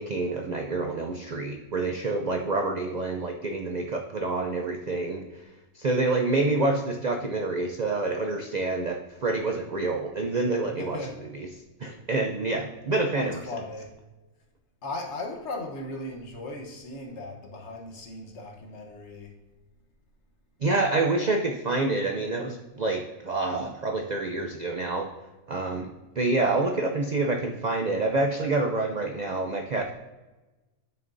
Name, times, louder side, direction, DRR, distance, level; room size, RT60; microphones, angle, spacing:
voice 1, 0.0-5.2 5.8-11.0 11.3-11.5 11.8-13.4 20.6-25.1 25.5-25.9 26.2-29.9, right 2 dB, 55° right, 3 dB, 0.5 m, -27 dB
voice 2, 10.8-11.2 13.2-13.9 14.8-19.3, left 2 dB, 55° left, 2 dB, 1.3 m, -37 dB
8.7 x 6.6 x 2.6 m, 1.1 s
omnidirectional pair, 1.5 m